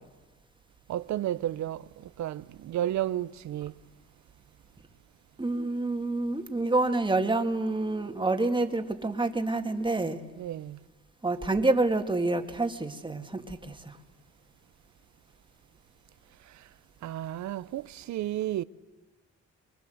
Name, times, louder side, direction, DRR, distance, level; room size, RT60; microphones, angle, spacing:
voice 1, 0.9-3.7 10.4-10.8 16.5-16.7 17.0-18.6, right 12 dB, 70° right, 0.8 m, -32 dB
voice 2, 5.4-10.2 11.2-14.0, right 2 dB, 15° right, 2.1 m, -28 dB
24.5 x 23.5 x 8.0 m
cardioid pair, 90°, 30 cm